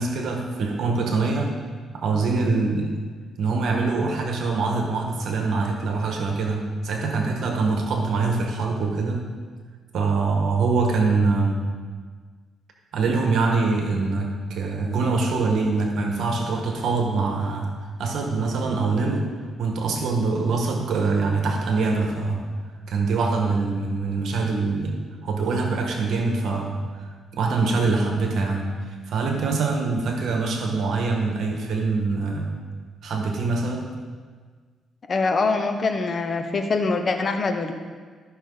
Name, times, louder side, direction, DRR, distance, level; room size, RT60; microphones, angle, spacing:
voice 1, 0.0-1.5 1.9-3.0 3.4-9.3 9.9-11.7 12.9-17.7 18.0-19.3 19.6-22.4 22.9-32.5 33.0-33.9, right 3 dB, 70° right, 2 dB, 1.4 m, -24 dB
voice 2, 35.1-37.7, left 3 dB, 40° left, 6 dB, 1.0 m, -24 dB
13.5 x 6.0 x 4.0 m, 1.5 s
cardioid pair, 90°, 0 cm